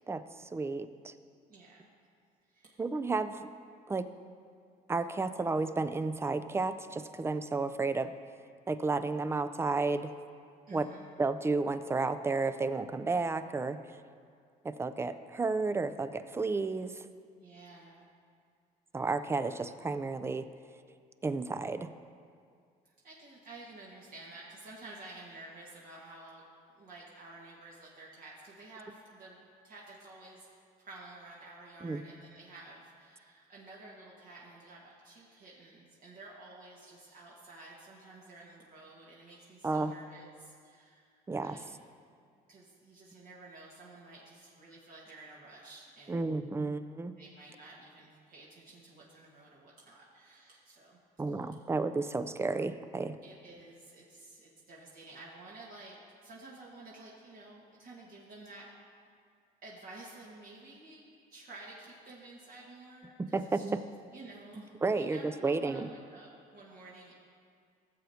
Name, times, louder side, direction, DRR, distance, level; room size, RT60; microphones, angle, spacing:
voice 1, 0.1-1.1 2.8-3.5 3.9-4.1 4.9-8.1 8.7-10.1 10.7-10.9 11.2-13.8 14.6-17.1 18.9-20.5 21.2-21.9 31.8-32.0 39.6-39.9 41.3-41.6 46.1-47.1 51.2-53.2 63.2-63.8 64.8-65.9, right 3 dB, 15° right, 12 dB, 0.4 m, -32 dB
voice 2, 1.5-1.9 2.5-2.8 10.7-11.1 17.4-18.1 22.8-26.4 26.7-30.5 30.8-41.6 42.5-46.4 47.2-51.0 51.3-51.6 53.2-55.9 56.2-58.7 59.6-61.0 61.3-63.8 64.1-67.1, right 2 dB, 60° right, -5 dB, 1.6 m, -51 dB
15.5 x 7.9 x 2.8 m, 2.2 s
cardioid pair, 110°, 17 cm